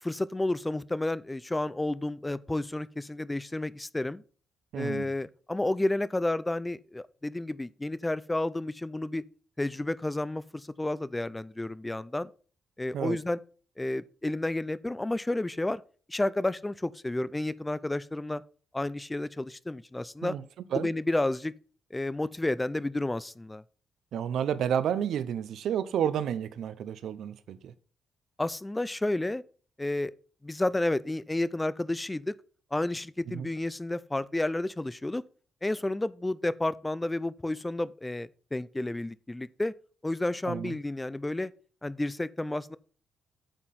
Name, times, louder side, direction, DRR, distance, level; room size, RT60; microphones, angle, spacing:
voice 1, 0.0-4.2 4.7-9.2 9.6-12.3 12.8-13.4 13.8-15.8 16.1-18.4 18.7-20.4 20.7-21.5 21.9-23.6 28.4-29.4 29.8-30.1 30.4-32.4 32.7-35.2 35.6-39.7 40.0-41.5 41.8-42.8, left 2 dB, 10° left, 0.4 m, -31 dB
voice 2, 4.7-5.1 12.9-13.2 20.2-20.4 20.7-20.9 24.1-27.7 33.3-33.5 40.4-40.8, right 9 dB, 75° right, 0.7 m, -31 dB
8.9 x 7.5 x 4.2 m
cardioid pair, 155°, 0 cm